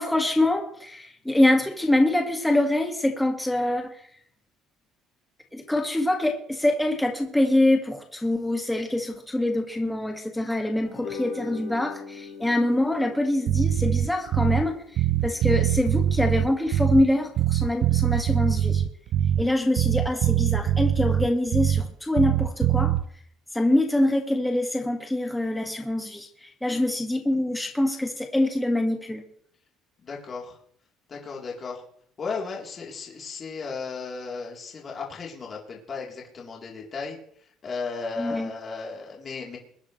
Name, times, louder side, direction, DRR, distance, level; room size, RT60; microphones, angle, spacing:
voice 1, 0.0-4.0 5.5-18.8 19.4-22.9 23.5-29.2 38.2-38.5, left 1 dB, 5° left, 2 dB, 1.9 m, -25 dB
sound 1, 10.8-17.4, left 6 dB, 65° left, 5.0 m, -43 dB
Bass guitar, 13.5-14.7 15.0-17.1 17.4-19.5 19.8-21.9 22.2-23.0, right 11 dB, 60° right, 0.6 m, -23 dB
voice 2, 30.0-30.6 31.1-31.8 32.2-37.2 37.6-39.6, left 4 dB, 35° left, -2 dB, 3.6 m, -35 dB
22.0 x 10.5 x 3.3 m, 0.63 s
cardioid pair, 115°, 0 cm